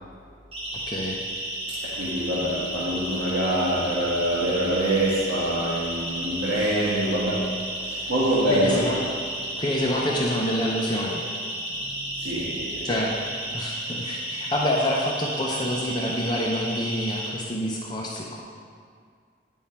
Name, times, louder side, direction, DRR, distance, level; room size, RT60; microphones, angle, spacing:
Siren, 0.5-17.3, right 1 dB, 30° right, 1.5 m, -33 dB
voice 1, 0.9-1.2 8.5-9.0 9.5-11.2 12.8-13.2 13.5-18.4, left 1 dB, 25° left, -3 dB, 0.5 m, -27 dB
voice 2, 1.7-7.6 7.8-8.8 11.7-12.9, right 1 dB, 70° right, -8 dB, 1.1 m, -25 dB
9.4 x 3.7 x 4.3 m, 2.1 s
head